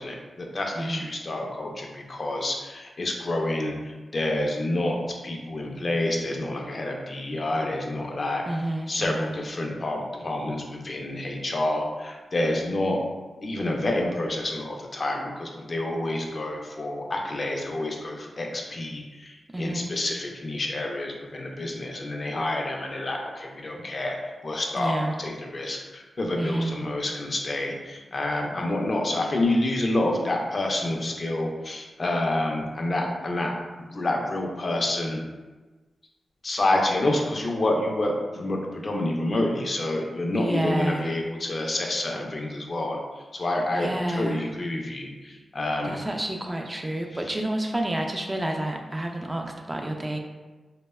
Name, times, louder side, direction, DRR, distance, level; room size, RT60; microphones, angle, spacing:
voice 1, 0.0-3.7 4.1-5.0 5.2-8.4 8.9-13.0 13.4-24.2 24.4-33.5 33.8-35.2 36.4-43.0 43.3-46.0, left 1 dB, 50° left, 1 dB, 0.4 m, -28 dB
voice 2, 8.5-9.4 19.5-19.9 24.8-25.1 26.4-26.8 40.4-41.1 43.7-44.5 45.8-50.2, right 1 dB, 20° right, 2 dB, 0.3 m, -29 dB
2.7 x 2.1 x 2.2 m, 1.2 s
cardioid pair, 55°, 0 cm